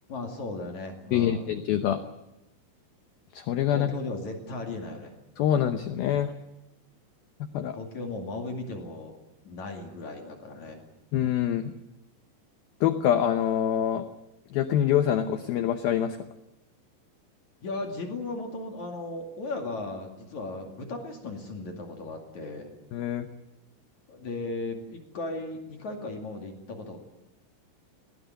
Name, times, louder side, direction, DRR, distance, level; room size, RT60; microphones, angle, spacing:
voice 1, 0.1-1.5 3.7-5.2 7.7-9.2 9.4-10.8 17.6-22.8 24.1-27.0, left 2 dB, 45° left, 3 dB, 3.1 m, -36 dB
voice 2, 1.1-2.0 3.3-3.9 5.4-6.3 7.5-7.8 11.1-11.7 12.8-14.1 14.5-16.2 22.9-23.3, left 10 dB, 80° left, 9 dB, 2.1 m, -25 dB
20.5 x 18.0 x 9.3 m, 0.89 s
omnidirectional pair, 5.6 m